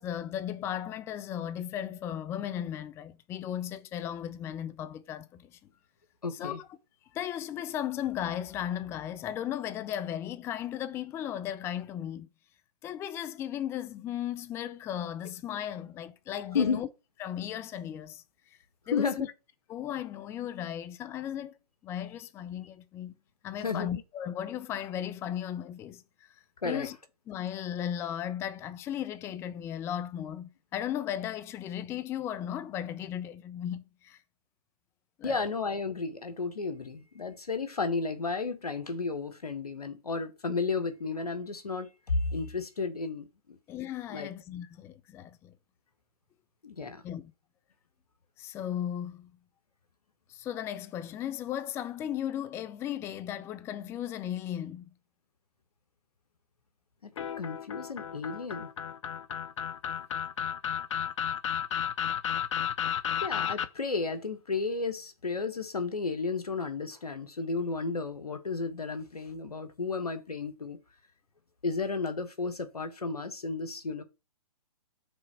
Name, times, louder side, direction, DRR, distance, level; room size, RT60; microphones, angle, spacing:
voice 1, 0.0-5.6 6.3-6.8 7.1-12.3 12.8-16.9 17.2-18.2 18.9-19.3 19.7-21.6 21.8-23.1 23.4-26.4 26.6-27.0 27.3-34.2 35.2-35.5 43.7-45.5 47.0-47.3 48.4-49.3 50.3-54.9, left 10 dB, 15° left, 0.5 m, -36 dB
voice 2, 6.2-6.6 16.5-16.8 18.9-19.3 23.6-23.9 26.6-26.9 35.2-43.6 44.1-44.3 46.6-47.0 57.0-58.7 63.2-70.8 71.6-74.0, left 4 dB, 85° left, 1.6 m, -33 dB
sound 1, 57.2-63.7, left 8 dB, 55° left, 0.8 m, -33 dB
6.0 x 4.4 x 5.7 m
hypercardioid pair, 135°, 19 cm